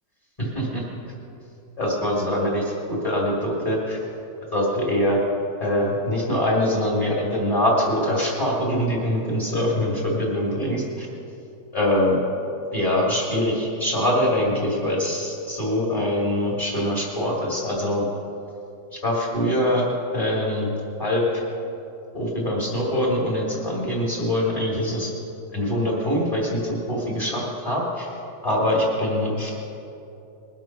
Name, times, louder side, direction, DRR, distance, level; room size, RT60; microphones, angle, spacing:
voice 1, 0.4-0.8 1.8-4.0 4.5-5.2 5.6-11.1 11.7-12.2 12.7-18.0 18.9-19.9 20.1-20.7 21.0-21.4 22.1-25.1 25.5-28.1 28.4-29.5, left 1 dB, 20° left, -4 dB, 2.8 m, -23 dB
21.5 x 7.8 x 6.1 m, 2.8 s
omnidirectional pair, 1.9 m